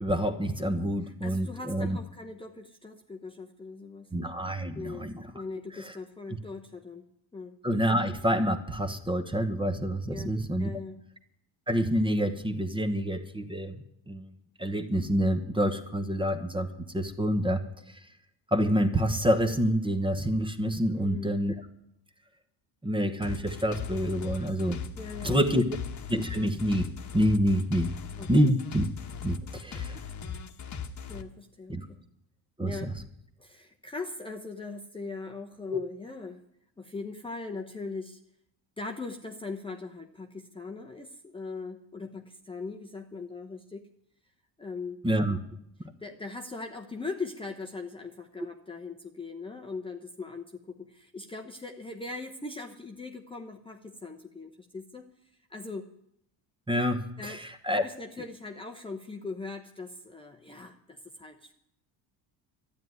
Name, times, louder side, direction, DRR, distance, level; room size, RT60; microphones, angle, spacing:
voice 1, 0.0-2.0 4.1-5.2 7.6-10.7 11.7-14.3 14.6-16.7 16.9-17.6 18.5-21.5 22.8-24.8 25.2-25.6 26.1-26.9 27.1-27.9 28.3-28.9 29.2-30.0 31.7-31.8 32.6-32.7 35.7-35.8 45.0-45.4 56.7-57.9, equal, 10° right, 7 dB, 1.2 m, -27 dB
voice 2, 1.0-4.1 4.7-7.0 7.3-7.5 10.1-11.0 20.9-21.3 25.0-25.7 28.2-28.5 31.1-32.0 32.6-32.9 33.4-36.4 36.8-38.2 38.8-43.9 44.6-45.0 46.0-55.1 55.5-55.9 57.2-57.4 57.7-61.5, left 3 dB, 10° left, 2 dB, 0.9 m, -40 dB
sound 1, 23.2-31.2, left 6 dB, 35° left, 1.3 m, -38 dB
12.5 x 9.3 x 9.6 m, 0.76 s
cardioid pair, 115°, 47 cm